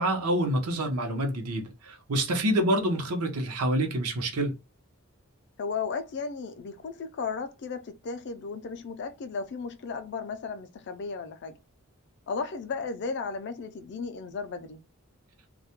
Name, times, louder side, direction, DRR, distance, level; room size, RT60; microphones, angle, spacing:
voice 1, 0.0-4.5, right 1 dB, 85° right, 0.7 m, -27 dB
voice 2, 5.6-11.6 12.3-14.8, left 5 dB, 50° left, 0.4 m, -35 dB
2.3 x 2.1 x 2.8 m
head